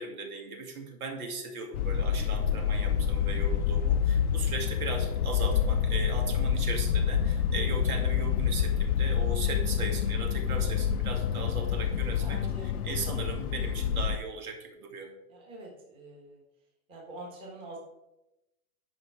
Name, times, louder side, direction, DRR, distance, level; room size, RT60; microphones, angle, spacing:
voice 1, 0.0-15.1, right 4 dB, 75° right, 3 dB, 2.3 m, -38 dB
sound 1, 1.7-14.2, left 8 dB, 85° left, 0.6 m, -27 dB
voice 2, 12.2-12.9 15.3-16.4 16.9-17.8, right 2 dB, 10° right, -2 dB, 1.3 m, -45 dB
10.0 x 5.3 x 4.7 m, 0.93 s
hypercardioid pair, 170°, 44 cm